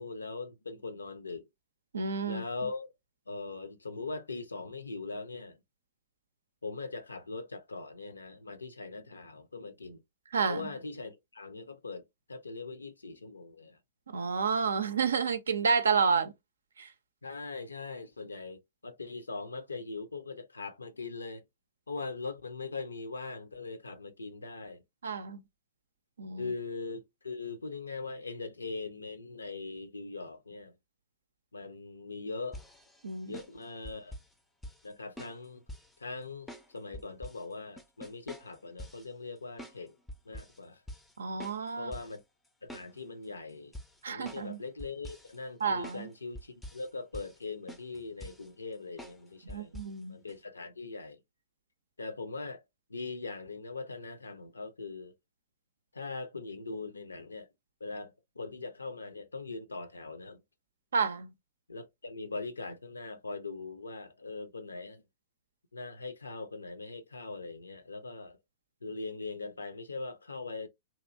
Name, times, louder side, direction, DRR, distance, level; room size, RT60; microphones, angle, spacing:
voice 1, 0.0-1.4 2.3-2.9 3.3-5.6 6.6-10.0 10.5-13.8 17.2-21.4 21.9-24.8 26.4-30.7 31.5-32.6 33.3-34.2 34.8-35.6 36.0-39.9 40.3-40.8 41.8-42.2 42.6-43.7 44.1-49.7 50.1-51.2 52.0-52.6 52.9-55.1 55.9-57.5 57.8-60.4 61.7-65.0 65.7-68.4 68.8-70.7, left 3 dB, 75° left, 0.6 m, -41 dB
voice 2, 1.9-2.4 10.3-10.6 14.1-16.3 16.8-16.9 25.0-25.4 26.2-26.5 33.0-33.4 41.2-41.9 44.0-44.6 45.6-46.1 49.4-50.2 60.9-61.3, right 5 dB, 65° right, 0.5 m, -30 dB
sound 1, 32.5-34.3 34.6-34.9 35.2-36.0 36.5-37.4 37.8-39.1 39.6-39.8 40.1-40.6 40.9-41.1 41.4-42.2 42.5-43.2 43.7-44.5 44.8-45.4 45.8-46.0 46.4-46.9 47.1-47.4 47.7-48.5 49.0-49.2 49.5-49.9 50.3-50.4, equal, 5° left, 0.5 m, -46 dB
2.9 x 2.5 x 2.4 m
figure-of-eight pair, 110°, 0 cm